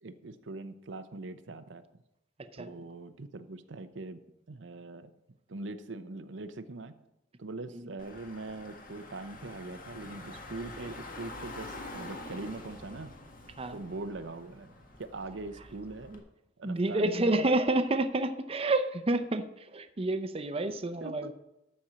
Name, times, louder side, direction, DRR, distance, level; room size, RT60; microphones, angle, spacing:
voice 1, 0.0-1.8 2.6-4.2 4.5-5.1 5.5-6.9 7.4-13.1 13.7-14.7 15.0-16.1 16.6-17.4 21.0-21.3, right 2 dB, 85° right, 10 dB, 0.7 m, -42 dB
Car / Engine, 8.0-16.2, left 2 dB, 50° left, 1.6 m, -46 dB
voice 2, 16.6-21.3, right 2 dB, 30° right, 8 dB, 0.6 m, -29 dB
13.0 x 4.4 x 7.4 m, 0.90 s
head